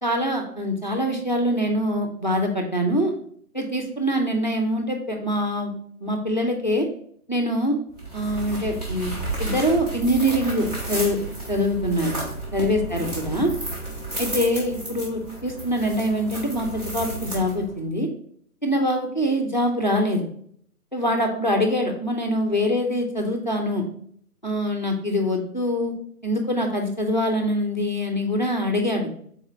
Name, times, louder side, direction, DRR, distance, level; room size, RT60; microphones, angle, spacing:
voice 1, 0.0-3.1 3.5-5.7 6.0-6.9 7.3-7.8 8.1-9.1 9.4-11.2 11.5-12.1 12.5-13.5 14.2-18.1 18.6-20.2 20.9-23.8 24.4-25.9 26.2-29.1, equal, 30° left, 2 dB, 0.5 m, -24 dB
sound 1, 7.9-17.8, right 2 dB, 25° right, 1.3 m, -32 dB
4.2 x 4.0 x 3.0 m, 0.64 s
figure-of-eight pair, 150°, 46 cm